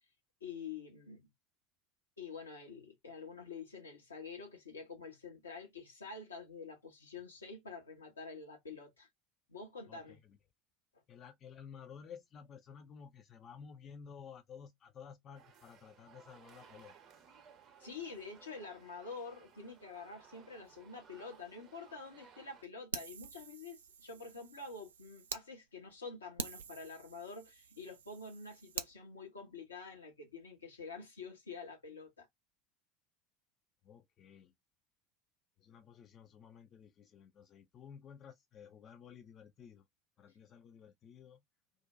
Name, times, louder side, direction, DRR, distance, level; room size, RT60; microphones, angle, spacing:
voice 1, 0.4-1.3 2.2-9.1 9.5-10.2 17.8-32.3, left 4 dB, 80° left, 0.9 m, -47 dB
voice 2, 9.9-10.4 11.1-16.9 33.8-34.5 35.6-39.9 40.2-41.4, left 7 dB, 40° left, 0.4 m, -54 dB
sound 1, 15.3-22.6, right 7 dB, 45° right, 0.7 m, -60 dB
Fire, 22.9-25.4 25.9-26.0 26.4-28.9, right 7 dB, 75° right, 0.3 m, -46 dB
2.5 x 2.1 x 2.3 m
figure-of-eight pair, 70°, 0 cm